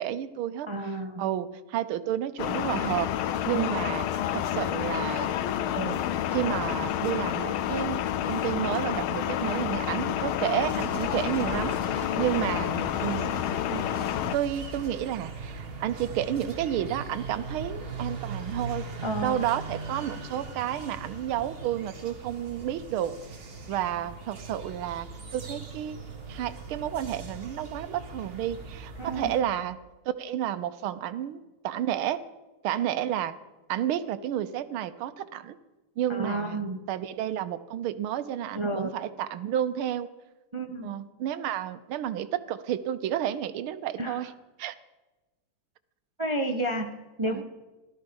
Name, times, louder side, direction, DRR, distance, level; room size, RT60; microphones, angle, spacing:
voice 1, 0.0-0.7 1.2-3.1 3.4-5.3 5.8-6.0 6.3-13.4 13.7-13.8 14.3-18.9 19.2-23.4 23.7-26.0 26.3-29.8 30.1-32.2 32.6-33.4 33.7-35.6 36.0-36.6 36.9-40.1 40.8-44.3 44.6-44.8 47.3-47.4, right 11 dB, 85° right, 13 dB, 1.6 m, -31 dB
voice 2, 0.7-1.3 3.5-3.8 12.1-12.2 19.0-19.4 29.0-29.3 36.1-36.8 38.6-38.9 40.5-40.9 44.0-44.2 46.2-47.4, right 1 dB, 50° right, 5 dB, 0.3 m, -31 dB
sound 1, 2.4-14.4, left 10 dB, 85° left, 1.5 m, -29 dB
sound 2, 10.6-29.4, right 3 dB, 30° right, 1.4 m, -40 dB
16.5 x 12.5 x 5.2 m, 1.1 s
omnidirectional pair, 2.3 m